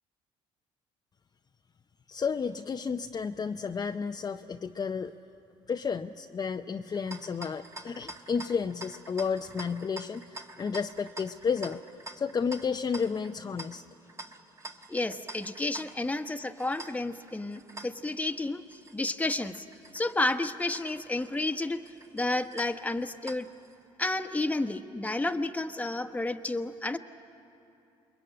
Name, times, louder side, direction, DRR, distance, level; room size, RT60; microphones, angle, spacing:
voice 1, 2.1-5.1 5.7-11.8 12.1-13.8, left 6 dB, 35° left, 5 dB, 0.6 m, -32 dB
sound 1, 6.9-23.8, right 2 dB, 25° right, 1.5 m, -47 dB
voice 2, 14.9-19.6 19.9-21.8 22.1-23.5 24.0-27.0, left 2 dB, 10° left, 8 dB, 1.2 m, -31 dB
28.0 x 22.0 x 8.9 m, 2.8 s
supercardioid pair, 75°, 12 cm